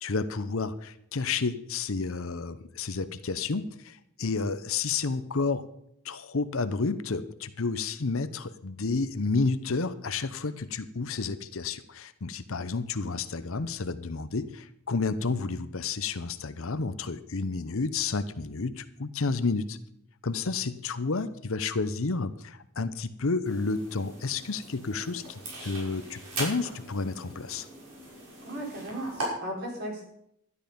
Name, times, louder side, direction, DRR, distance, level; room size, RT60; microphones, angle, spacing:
voice 1, 0.0-5.6 6.0-19.8 20.2-27.7, left 4 dB, 65° left, 12 dB, 0.8 m, -31 dB
sound 1, 23.4-29.3, right 1 dB, 90° right, 5.8 m, -40 dB
voice 2, 28.4-30.0, right 1 dB, 45° right, -1 dB, 4.1 m, -36 dB
12.5 x 11.0 x 5.2 m, 0.74 s
head